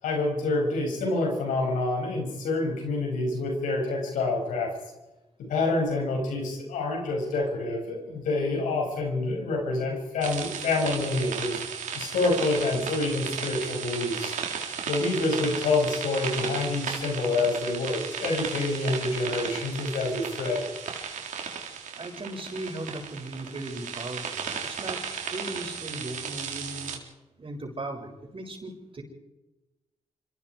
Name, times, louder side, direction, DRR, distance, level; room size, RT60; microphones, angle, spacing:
voice 1, 0.0-4.7 5.5-11.6 11.9-14.4 14.9-20.7, left 2 dB, 85° left, 1 dB, 7.5 m, -27 dB
sound 1, 10.2-27.0, right 7 dB, 80° right, 3.7 m, -35 dB
voice 2, 22.0-25.0 25.3-27.0 27.4-29.0, right 2 dB, 45° right, 2 dB, 7.0 m, -37 dB
25.5 x 25.5 x 5.0 m, 1.0 s
supercardioid pair, 45°, 13 cm